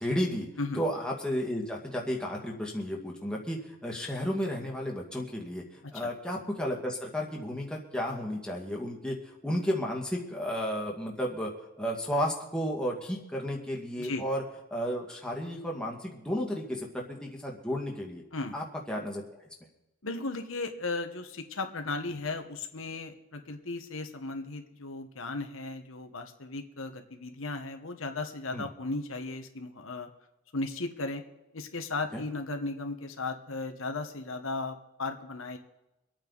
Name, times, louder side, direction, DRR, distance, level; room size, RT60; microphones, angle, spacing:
voice 1, 0.0-0.5 0.8-11.5 11.8-14.4 14.7-18.2 18.5-19.5 28.5-28.7 32.1-32.2, equal, 5° left, -1 dB, 2.0 m, -33 dB
voice 2, 20.0-30.1 30.5-31.2 31.5-35.6, left 3 dB, 75° left, 5 dB, 1.4 m, -36 dB
25.0 x 9.0 x 4.1 m, 0.96 s
head